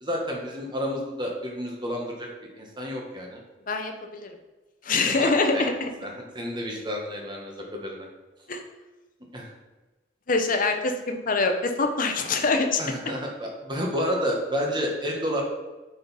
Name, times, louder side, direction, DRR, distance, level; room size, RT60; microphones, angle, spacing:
voice 1, 0.0-2.3 2.6-3.4 5.1-5.7 6.0-6.1 6.3-8.1 9.3-9.5 12.8-15.4, equal, 25° right, 0 dB, 1.2 m, -30 dB
voice 2, 3.7-4.3 4.8-5.9 8.5-8.6 10.3-12.8 13.1-13.2, left 3 dB, 45° left, 5 dB, 0.7 m, -24 dB
8.1 x 4.0 x 4.1 m, 1.1 s
head